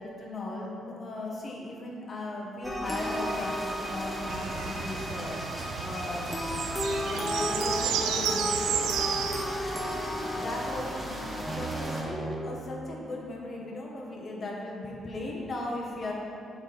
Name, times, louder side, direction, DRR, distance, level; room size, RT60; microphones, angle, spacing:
voice 1, 0.0-5.4 5.8-6.4 7.0-9.0 10.3-16.1, left 2 dB, 35° left, -3 dB, 1.4 m, -37 dB
sound 1, 2.6-12.4, equal, 5° left, 0.8 m, -34 dB
sound 2, 2.8-12.0, right 1 dB, 20° right, 1.2 m, -39 dB
sound 3, 4.3-9.4, right 8 dB, 90° right, 0.3 m, -32 dB
7.2 x 4.2 x 5.2 m, 2.7 s
cardioid pair, 90°, 0 cm